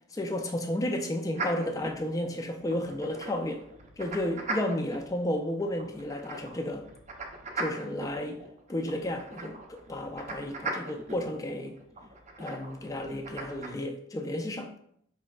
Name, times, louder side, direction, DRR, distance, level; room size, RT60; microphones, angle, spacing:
voice 1, 0.1-3.6 4.0-6.8 7.6-8.4 8.7-11.8 12.4-14.8, left 1 dB, 20° left, 4 dB, 0.3 m, -32 dB
sound 1, 1.3-13.7, right 2 dB, 40° right, 0.5 m, -40 dB
4.3 x 3.1 x 2.3 m, 0.69 s
head